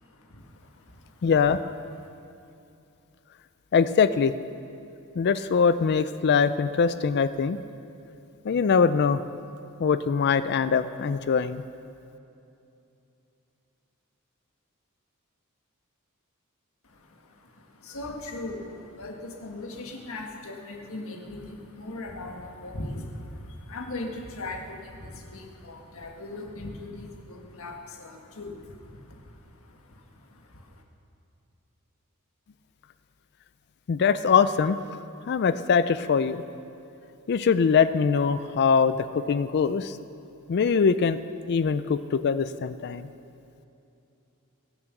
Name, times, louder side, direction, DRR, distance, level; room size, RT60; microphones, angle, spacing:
voice 1, 0.0-1.3 2.0-2.1 16.8-30.8, left 2 dB, 65° left, 2 dB, 1.6 m, -40 dB
voice 2, 1.2-1.6 3.7-4.3 5.2-7.6 8.4-9.2 9.8-11.6 33.9-34.8 35.3-36.4 37.3-40.0 40.5-41.2 41.5-43.1, left 6 dB, 50° left, 13 dB, 0.4 m, -22 dB
22.0 x 7.7 x 6.0 m, 2.7 s
head